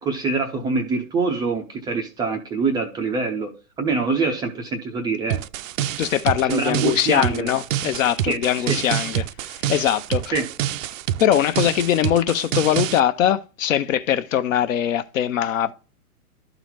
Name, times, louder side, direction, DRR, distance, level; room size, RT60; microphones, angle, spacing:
voice 1, 0.0-5.4 6.5-7.5 8.3-8.8 10.3-10.5, right 4 dB, 10° right, 0.4 m, -25 dB
sound 1, 5.3-13.0, right 12 dB, 60° right, 0.6 m, -27 dB
voice 2, 6.0-10.3 11.2-15.7, left 10 dB, 55° left, 0.9 m, -21 dB
11.5 x 4.0 x 4.6 m
hypercardioid pair, 120°, 46 cm